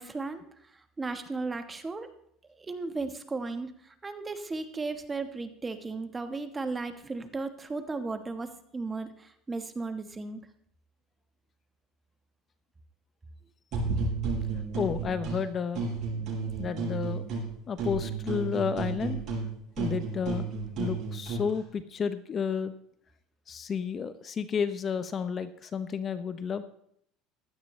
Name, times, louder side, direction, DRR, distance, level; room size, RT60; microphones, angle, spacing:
voice 1, 0.0-2.1 2.6-10.5, right 3 dB, 20° right, 8 dB, 1.3 m, -36 dB
sound 1, 13.7-15.4 15.7-17.5 17.8-21.5, right 4 dB, 50° right, 6.5 m, -32 dB
voice 2, 14.8-15.8 16.6-17.2 17.7-19.2 19.8-20.5 20.8-22.7 23.5-26.6, left 6 dB, 35° left, 12 dB, 0.7 m, -31 dB
16.0 x 11.5 x 3.2 m, 0.70 s
supercardioid pair, 110°, 0 cm